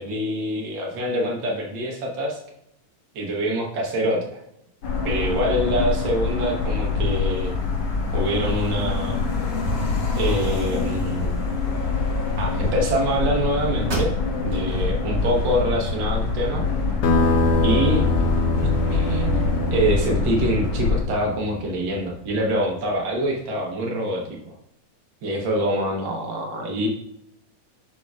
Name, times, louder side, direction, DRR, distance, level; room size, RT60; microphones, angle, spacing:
voice 1, 0.0-2.4 3.1-4.4 5.0-7.5 8.1-9.3 10.1-11.4 12.4-14.1 14.4-16.6 17.6-18.0 18.6-19.4 19.7-24.5 25.2-26.9, right 1 dB, 80° right, -1 dB, 1.0 m, -25 dB
sound 1, 4.8-21.0, left 4 dB, 60° left, 1.8 m, -24 dB
sound 2, 13.9-14.7 15.2-15.3 15.8-16.7, right 2 dB, 40° right, 1.9 m, -33 dB
sound 3, 17.0-22.2, left 2 dB, 85° left, 1.3 m, -24 dB
6.7 x 6.1 x 2.3 m, 0.77 s
omnidirectional pair, 3.6 m